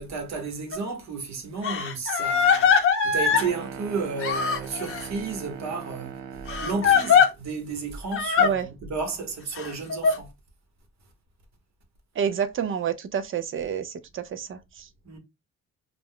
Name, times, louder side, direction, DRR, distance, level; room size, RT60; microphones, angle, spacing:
voice 1, 0.0-10.3 15.0-15.2, right 4 dB, 65° right, 1.1 m, -33 dB
Crying sobbing, 0.7-0.8 1.6-3.5 4.2-5.1 6.5-7.3 8.1-8.5 9.6-10.2, left 6 dB, 45° left, 0.8 m, -21 dB
sound 1, 3.3-7.2, right 7 dB, 85° right, 0.6 m, -39 dB
voice 2, 12.2-14.6, right 7 dB, 45° right, 0.5 m, -28 dB
2.4 x 2.1 x 3.5 m
cardioid pair, 90°, 30 cm